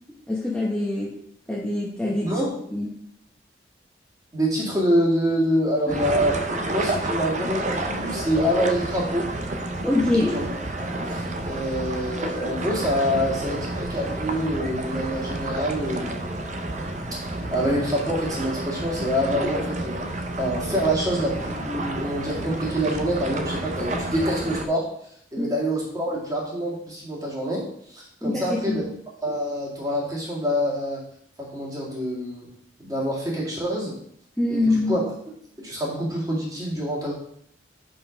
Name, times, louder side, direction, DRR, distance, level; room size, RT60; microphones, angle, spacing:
voice 1, 0.3-1.1 1.5-2.3 2.7-3.0 9.8-10.4 25.4-25.5 28.2-28.8 34.4-34.9, left 2 dB, 5° left, -5 dB, 1.0 m, -24 dB
voice 2, 2.2-2.6 4.3-6.4 6.7-9.3 10.3-10.4 11.0-16.3 17.2-20.0 20.4-24.9 25.3-28.8 29.2-31.0 31.4-32.5 32.8-34.0 34.5-35.0 35.6-37.1, equal, 20° right, -4 dB, 2.1 m, -26 dB
sound 1, 5.9-24.7, right 1 dB, 40° right, 0.7 m, -30 dB
5.5 x 5.4 x 5.2 m, 0.68 s
head